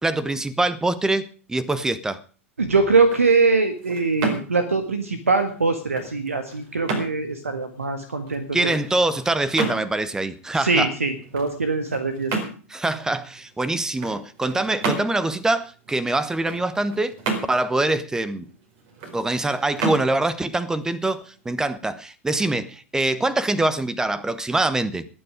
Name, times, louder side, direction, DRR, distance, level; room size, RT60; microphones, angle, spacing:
voice 1, 0.0-2.2 8.5-10.9 12.7-17.2 17.5-18.5 19.1-25.1, right 2 dB, 10° right, 1.0 m, -24 dB
voice 2, 2.6-8.7 10.5-12.4, right 4 dB, 75° right, 1.7 m, -22 dB
sound 1, 2.9-21.7, right 4 dB, 40° right, 4.6 m, -34 dB
20.5 x 9.5 x 5.0 m
figure-of-eight pair, 95°, 7 cm